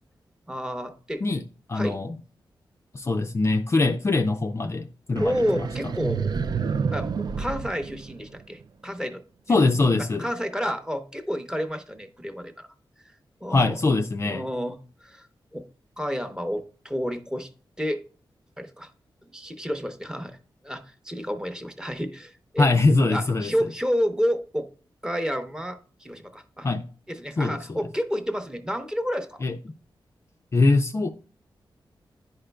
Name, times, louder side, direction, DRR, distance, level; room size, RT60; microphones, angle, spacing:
voice 1, 0.5-1.2 1.7-2.0 5.2-6.3 6.9-7.1 7.4-9.2 10.2-12.7 13.4-13.8 14.2-15.3 15.5-15.7 16.0-17.5 17.8-18.0 18.6-18.9 19.3-20.4 20.6-22.7 23.1-24.7 25.0-26.7 27.1-29.4, equal, 10° right, 0.7 m, -30 dB
voice 2, 1.7-2.2 2.9-5.7 9.5-10.3 13.5-14.5 22.6-23.5 26.6-26.9 27.4-27.8 29.4-29.6 30.5-31.1, left 3 dB, 30° left, 0.4 m, -22 dB
sound 1, 5.2-8.6, right 5 dB, 55° right, 0.4 m, -29 dB
10.5 x 5.0 x 2.2 m
wide cardioid pair, 140°, 9 cm